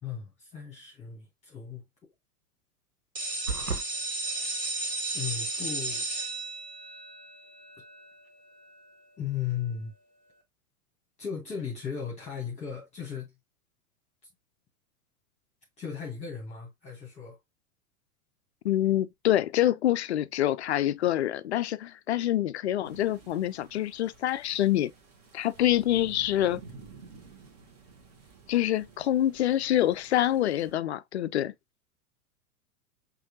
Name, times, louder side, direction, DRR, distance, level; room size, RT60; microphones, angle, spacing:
voice 1, 0.0-2.1 5.1-6.0 9.2-9.9 11.2-13.3 15.8-17.4, left 8 dB, 15° left, 1.3 m, -36 dB
sound 1, 3.1-8.8, right 2 dB, 20° right, 1.7 m, -34 dB
sound 2, 3.5-3.9, right 4 dB, 90° right, 0.8 m, -31 dB
voice 2, 18.6-24.9 25.3-26.6 28.5-31.5, left 13 dB, 50° left, 0.4 m, -26 dB
sound 3, 22.8-30.7, right 4 dB, 35° right, 1.5 m, -51 dB
6.3 x 2.7 x 2.7 m
figure-of-eight pair, 95°, 45 cm